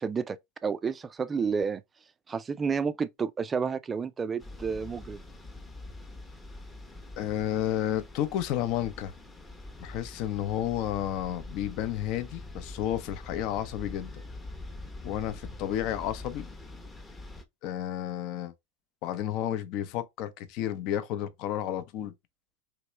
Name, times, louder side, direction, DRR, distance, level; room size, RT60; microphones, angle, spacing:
voice 1, 0.0-1.8 2.3-5.2, right 5 dB, 20° right, 0.4 m, -30 dB
sound 1, 4.4-17.4, left 2 dB, 10° left, 0.7 m, -44 dB
voice 2, 7.2-9.1 9.8-14.2 15.0-16.5 17.6-18.5 19.0-22.1, left 11 dB, 50° left, 0.6 m, -31 dB
3.1 x 3.0 x 3.2 m
hypercardioid pair, 115°, 0 cm